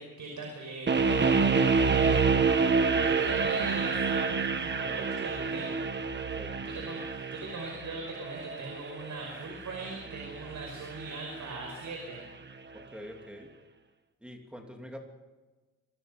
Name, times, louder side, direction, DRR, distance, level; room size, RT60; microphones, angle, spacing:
voice 1, 0.0-2.2 3.0-5.8 6.6-12.2, right 3 dB, 65° right, 1 dB, 5.4 m, -40 dB
sound 1, 0.9-11.9, right 5 dB, 35° right, 1.4 m, -28 dB
voice 2, 12.7-13.5 14.2-15.0, equal, 5° right, 2 dB, 2.9 m, -45 dB
26.5 x 23.0 x 5.4 m, 1.3 s
wide cardioid pair, 180°, 33 cm